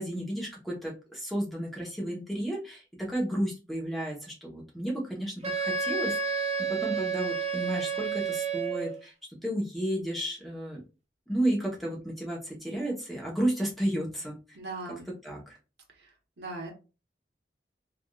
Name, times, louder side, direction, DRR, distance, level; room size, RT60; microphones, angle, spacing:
voice 1, 0.0-2.8 3.1-9.1 9.4-10.8 11.3-14.3 15.2-15.6, right 1 dB, ahead, -3 dB, 0.8 m, -32 dB
Wind instrument woodwind instrument, 5.4-9.0, right 5 dB, 35° right, 0.4 m, -30 dB
voice 2, 14.5-15.1 15.9-16.1 16.4-16.7, right 2 dB, 85° right, 1 dB, 1.0 m, -39 dB
3.4 x 2.4 x 2.3 m, 0.32 s
head